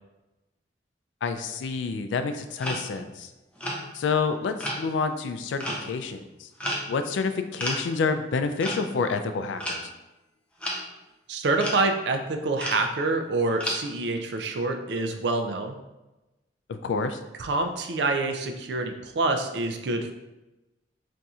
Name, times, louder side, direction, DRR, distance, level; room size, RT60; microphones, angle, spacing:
voice 1, 1.2-3.3 3.9-6.5 6.9-9.9 16.7-17.2, left 4 dB, 85° left, 8 dB, 0.3 m, -28 dB
sound 1, 2.6-3.0 3.6-3.8 4.6-4.8 5.6-5.9 6.6-6.9 7.6-7.8 8.6-8.8 9.6-9.8 10.6-10.8 11.6-11.8 12.6-12.8 13.6-13.8, equal, 5° left, 0.5 m, -31 dB
voice 2, 11.3-15.8 17.4-20.1, right 3 dB, 65° right, 5 dB, 0.4 m, -26 dB
4.1 x 2.6 x 2.3 m, 1.0 s
head